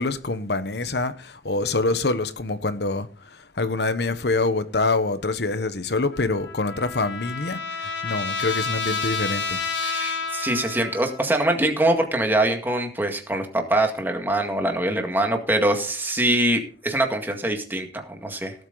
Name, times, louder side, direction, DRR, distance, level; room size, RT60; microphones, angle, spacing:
voice 1, 0.0-9.6, left 3 dB, 65° left, 1.1 m, -26 dB
Trumpet, 6.1-11.3, left 4 dB, 85° left, 2.1 m, -30 dB
voice 2, 9.8-18.5, right 1 dB, 10° right, 1.9 m, -23 dB
17.5 x 8.0 x 4.0 m
head